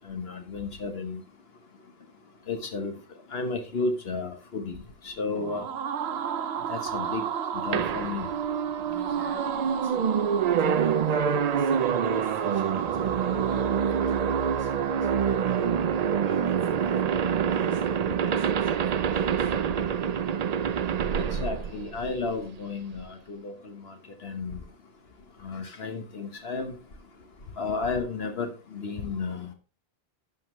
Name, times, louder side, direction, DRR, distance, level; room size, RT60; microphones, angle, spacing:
voice 1, 0.0-1.2 2.5-2.9 3.3-4.8 5.0-5.6 6.7-7.2 7.5-8.3 21.1-23.9 24.2-24.6 25.4-26.7 27.6-29.5, left 4 dB, 70° left, 1.4 m, -32 dB
sound 1, 5.3-16.2, right 8 dB, 80° right, 1.0 m, -34 dB
voice 2, 5.4-5.7 8.8-10.2 10.6-15.7 16.2-19.5, right 1 dB, 10° right, 3.5 m, -47 dB
sound 2, 7.7-22.5, right 7 dB, 50° right, 0.5 m, -26 dB
11.5 x 7.2 x 3.1 m
omnidirectional pair, 1.1 m